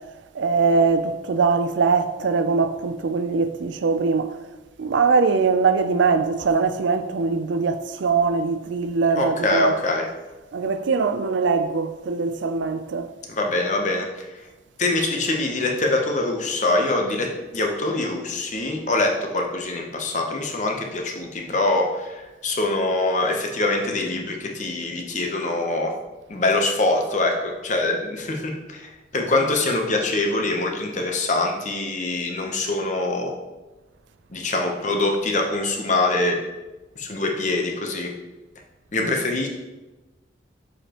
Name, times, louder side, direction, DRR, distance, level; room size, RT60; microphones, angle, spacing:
voice 1, 0.3-4.4 4.8-9.8 10.5-13.1 39.0-39.1, right 4 dB, 70° right, 0.4 m, -22 dB
voice 2, 9.2-10.0 13.3-14.4 14.8-25.9 26.3-33.3 34.3-36.4 37.0-38.1 38.9-39.5, left 2 dB, 40° left, 0.8 m, -24 dB
6.6 x 5.0 x 2.9 m
head